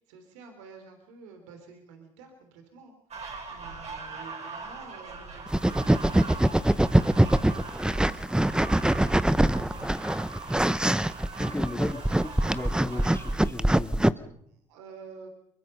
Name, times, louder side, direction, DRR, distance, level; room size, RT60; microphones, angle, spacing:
voice 1, 0.0-2.9 3.5-6.9 7.5-10.2 11.2-11.4 14.5-15.3, right 4 dB, 90° right, 5 dB, 3.3 m, -50 dB
sound 1, 3.1-13.5, right 4 dB, 45° right, 6.2 m, -41 dB
sound 2, 5.5-14.1, right 1 dB, 5° right, 0.8 m, -23 dB
voice 2, 11.4-14.3, left 2 dB, 15° left, 4 dB, 3.5 m, -37 dB
23.0 x 22.5 x 5.5 m, 0.70 s
supercardioid pair, 70°, 15 cm